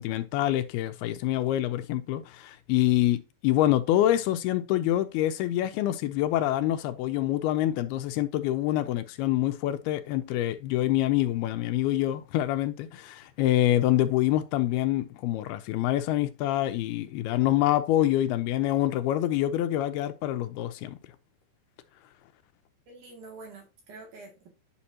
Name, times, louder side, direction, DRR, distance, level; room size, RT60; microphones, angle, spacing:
voice 1, 0.0-21.0, left 13 dB, 80° left, 2.5 m, -26 dB
voice 2, 22.9-24.5, right 3 dB, 55° right, 3.5 m, -46 dB
9.6 x 6.1 x 2.8 m
omnidirectional pair, 4.6 m